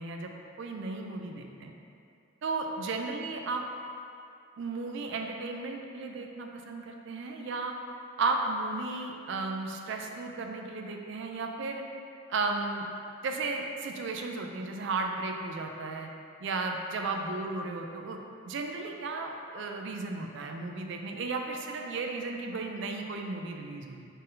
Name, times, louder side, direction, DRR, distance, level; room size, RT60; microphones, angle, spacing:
voice 1, 0.0-1.7 2.4-3.6 4.6-7.7 8.2-11.8 12.3-12.8 13.2-16.1 16.4-24.1, right 3 dB, 60° right, 3 dB, 0.3 m, -34 dB
4.0 x 2.6 x 3.7 m, 2.5 s
head